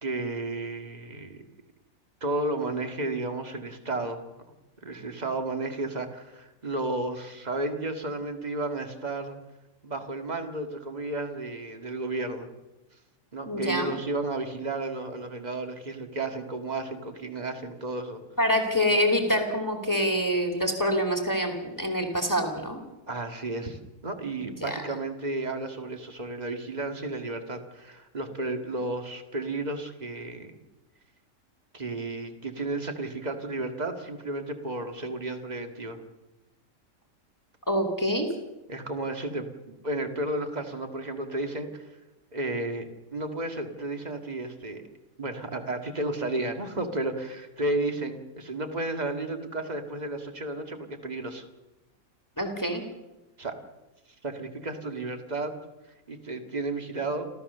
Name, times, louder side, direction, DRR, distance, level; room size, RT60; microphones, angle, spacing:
voice 1, 0.0-1.4 2.2-4.3 4.8-9.4 9.8-12.5 13.3-18.2 23.1-30.6 31.7-36.0 38.7-41.9 42.3-44.8 45.2-51.4 53.4-53.5 54.2-55.5 56.1-57.3, right 2 dB, 30° right, 6 dB, 2.0 m, -33 dB
voice 2, 13.5-13.9 18.4-22.8 24.4-24.8 37.7-38.3 52.4-52.8, equal, 15° left, 3 dB, 2.7 m, -26 dB
29.5 x 13.5 x 6.8 m, 1.0 s
omnidirectional pair, 1.5 m